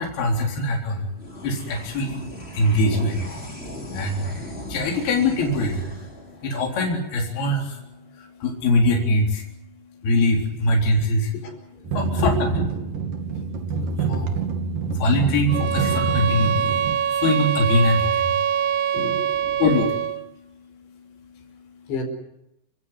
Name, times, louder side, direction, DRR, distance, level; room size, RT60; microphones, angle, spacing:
voice 1, 0.0-11.4 11.9-12.5 12.9-19.0 19.3-21.9, left 1 dB, 65° left, 0 dB, 5.7 m, -24 dB
sound 1, 1.2-7.9, left 1 dB, 15° left, 5.3 m, -37 dB
sound 2, 11.8-17.0, right 4 dB, 55° right, 4.0 m, -27 dB
voice 2, 12.0-12.7 18.9-19.2 21.9-22.0, left 2 dB, 90° left, 5 dB, 7.0 m, -27 dB
sound 3, 15.5-20.3, right 8 dB, 75° right, 3.2 m, -24 dB
29.5 x 16.5 x 9.5 m, 0.83 s
omnidirectional pair, 4.9 m